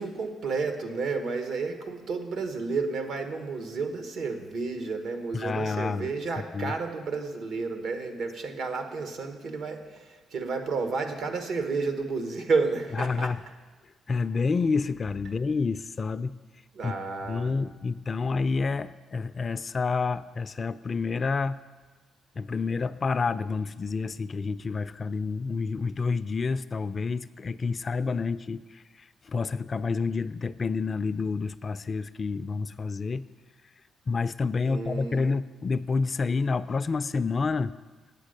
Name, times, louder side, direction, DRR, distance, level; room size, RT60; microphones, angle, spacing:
voice 1, 0.0-13.3 16.7-17.5 34.6-35.2, right 4 dB, 75° right, 6 dB, 1.2 m, -31 dB
voice 2, 5.3-6.1 6.5-6.7 13.0-13.4 14.1-16.4 16.8-16.9 17.2-21.6 22.4-33.2 34.1-37.7, left 4 dB, 40° left, 14 dB, 0.3 m, -29 dB
9.1 x 8.0 x 6.5 m, 1.3 s
cardioid pair, 90°, 0 cm